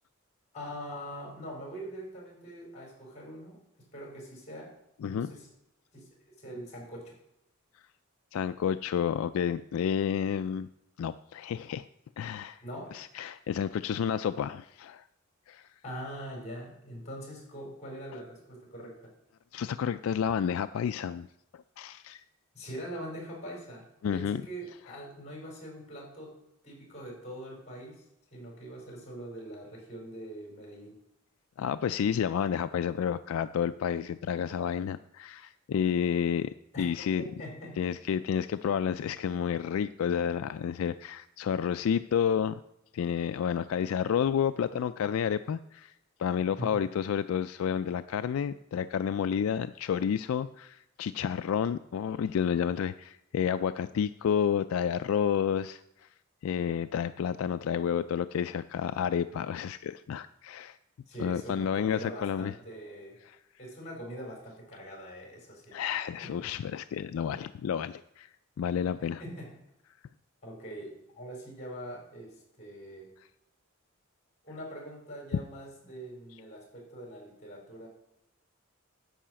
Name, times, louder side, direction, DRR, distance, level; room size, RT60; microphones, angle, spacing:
voice 1, 0.5-4.8 5.0-5.5 5.9-6.0 6.4-7.1 12.6-12.9 15.8-19.1 22.5-26.4 26.6-28.0 28.3-31.0 36.7-36.9 37.4-37.8 44.7-44.8 46.6-46.8 61.1-63.2 63.6-65.8 66.2-66.3 69.2-69.6 70.4-73.1 74.4-77.9, right 1 dB, 35° left, 0 dB, 4.3 m, -43 dB
voice 2, 5.0-5.3 8.3-10.7 11.0-11.9 12.2-12.6 12.9-15.1 15.5-15.7 19.5-21.3 21.5-22.2 24.0-24.4 31.6-37.2 37.8-42.6 42.9-45.9 46.2-56.1 56.4-60.8 61.2-62.5 63.2-63.4 65.7-68.3 68.6-69.2 73.2-73.3, left 8 dB, 75° left, 11 dB, 0.3 m, -30 dB
10.0 x 5.0 x 7.5 m, 0.83 s
head